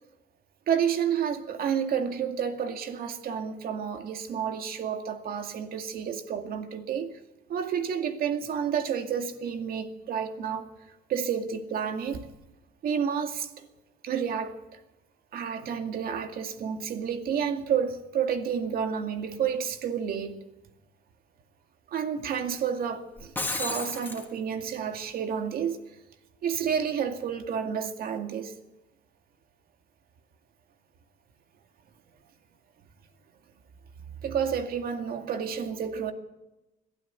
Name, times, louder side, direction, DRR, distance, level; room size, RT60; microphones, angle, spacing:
voice 1, 0.7-7.2 7.5-10.7 11.1-12.3 12.8-13.5 14.0-14.5 15.3-20.4 21.9-25.8 26.4-28.5 34.2-36.1, right 7 dB, 60° right, 2.2 m, -30 dB
Shatter, 23.2-24.3, left 2 dB, 10° left, 3.0 m, -32 dB
21.5 x 12.5 x 9.5 m
cardioid pair, 110°, 17 cm